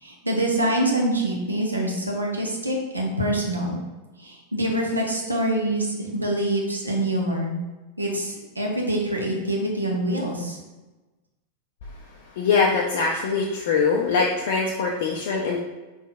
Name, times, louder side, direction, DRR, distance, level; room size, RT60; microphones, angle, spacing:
voice 1, 0.0-3.8 4.2-7.5 8.0-10.6, right 1 dB, 80° right, 0 dB, 0.7 m, -25 dB
voice 2, 12.4-15.6, left 4 dB, 55° left, -2 dB, 0.4 m, -22 dB
4.4 x 3.5 x 2.2 m, 1.2 s
figure-of-eight pair, 90°, 0 cm